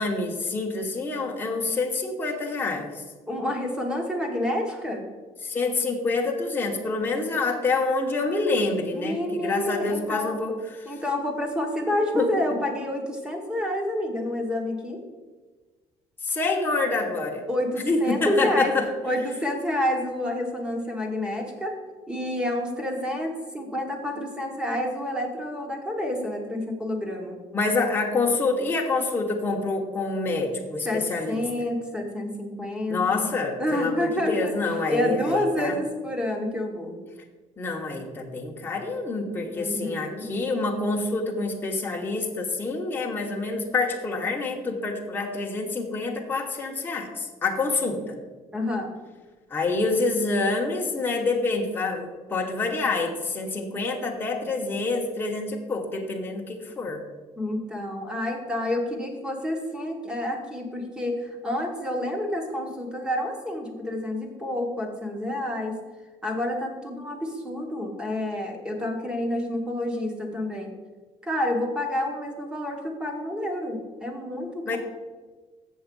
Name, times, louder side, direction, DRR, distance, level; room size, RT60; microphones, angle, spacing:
voice 1, 0.0-2.9 5.4-10.5 12.1-12.6 16.2-17.4 17.9-18.9 27.5-31.4 32.9-35.8 37.6-48.1 49.5-57.0 74.7-74.8, left 3 dB, 15° left, 0 dB, 1.0 m, -27 dB
voice 2, 3.3-5.0 8.9-10.4 10.8-15.0 17.5-18.7 19.0-21.8 22.1-27.4 30.8-33.3 33.6-34.6 34.9-37.0 39.4-40.3 48.5-49.0 57.4-65.8 66.2-70.8 71.2-74.8, left 1 dB, 5° right, 3 dB, 1.1 m, -29 dB
7.1 x 7.0 x 5.3 m, 1.3 s
cardioid pair, 175°, 12 cm